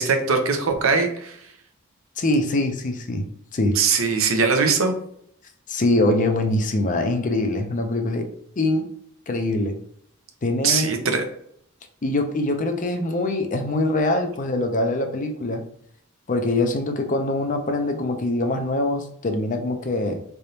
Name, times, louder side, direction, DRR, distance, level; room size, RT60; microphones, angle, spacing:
voice 1, 0.0-1.4 3.8-4.9 10.6-11.2, right 5 dB, 70° right, 6 dB, 0.7 m, -21 dB
voice 2, 2.2-3.2 3.5-3.8 5.7-8.3 8.6-8.9 9.3-9.7 10.4-10.9 12.0-15.6 16.3-20.2, left 2 dB, 40° left, 5 dB, 0.5 m, -23 dB
3.9 x 3.4 x 2.8 m, 0.67 s
head